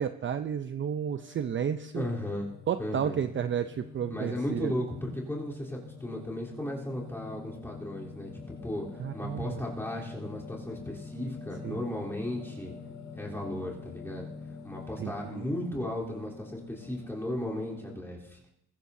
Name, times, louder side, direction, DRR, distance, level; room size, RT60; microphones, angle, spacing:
voice 1, 0.0-2.1 2.7-4.8 9.0-9.6 11.6-11.8 15.0-15.5, right 8 dB, 40° right, 10 dB, 0.6 m, -32 dB
Singing, 0.9-18.0, left 4 dB, 80° left, 4.6 m, -46 dB
voice 2, 1.9-2.5 2.8-3.2 4.1-8.9 9.1-12.7 13.1-14.3 14.6-18.4, left 1 dB, 10° left, -5 dB, 3.6 m, -35 dB
22.5 x 13.5 x 2.7 m, 0.80 s
cardioid pair, 90°, 30 cm